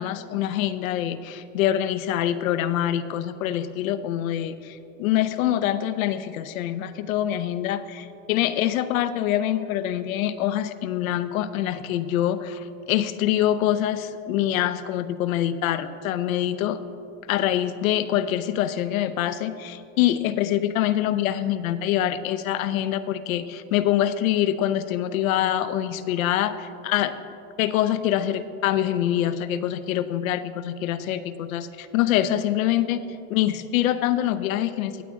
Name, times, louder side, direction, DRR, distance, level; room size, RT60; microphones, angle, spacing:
voice 1, 0.0-16.8 17.3-27.1 27.6-33.0 33.3-35.0, left 12 dB, 90° left, 11 dB, 0.7 m, -25 dB
15.5 x 8.4 x 3.6 m, 2.8 s
supercardioid pair, 110°, 40 cm